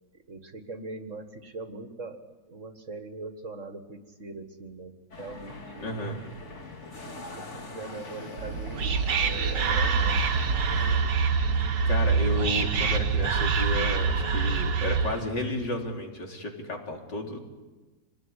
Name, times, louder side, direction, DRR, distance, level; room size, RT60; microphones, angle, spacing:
voice 1, 0.1-6.0 7.1-10.2, right 3 dB, 45° right, 8 dB, 1.9 m, -41 dB
sound 1, 5.1-11.0, left 3 dB, 40° left, 2.4 m, -42 dB
voice 2, 5.8-6.2 11.9-17.4, left 2 dB, 70° left, 1 dB, 4.2 m, -32 dB
Whispering, 8.4-15.3, right 5 dB, 75° right, 2.1 m, -25 dB
27.0 x 19.5 x 9.8 m, 1.2 s
omnidirectional pair, 1.9 m